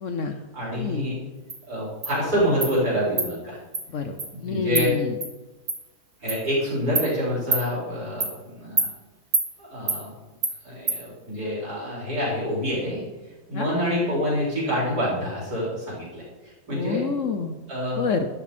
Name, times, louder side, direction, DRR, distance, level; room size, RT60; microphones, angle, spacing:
voice 1, 0.0-0.3 0.8-1.1 3.9-5.1 13.5-13.7 16.7-17.5 18.0-18.3, left 4 dB, 55° left, 7 dB, 1.0 m, -27 dB
voice 2, 0.5-1.2 1.7-3.6 4.3-5.0 6.2-8.9 9.6-10.1 10.6-13.0 13.5-17.1 17.7-18.1, equal, 65° right, -7 dB, 5.6 m, -27 dB
Insect, 1.5-1.6 2.0-2.1 2.6-2.7 3.2-3.3 3.7-3.8 4.2-4.3 4.7-4.9 5.2-5.3 5.7-5.8 6.3-6.4 7.0-7.1 7.5-7.6 8.2-8.3 8.8-8.9 9.3-9.5 9.9-10.0 10.4-10.5 10.9-11.0, right 3 dB, 35° right, 1.9 m, -25 dB
12.5 x 11.5 x 4.3 m, 1.2 s
omnidirectional pair, 1.8 m